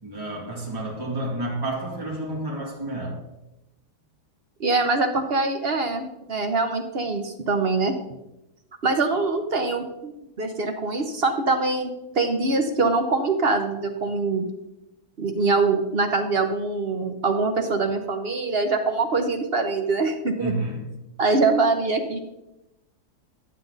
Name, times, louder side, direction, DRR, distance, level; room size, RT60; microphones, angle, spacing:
voice 1, 0.0-3.2 20.4-20.9, right 1 dB, 15° right, -4 dB, 2.3 m, -30 dB
voice 2, 4.6-7.9 8.8-10.1 10.4-11.9 12.1-14.5 15.2-20.5 21.2-22.2, right 3 dB, 45° right, 5 dB, 0.9 m, -23 dB
12.0 x 7.7 x 3.9 m, 0.92 s
omnidirectional pair, 1.7 m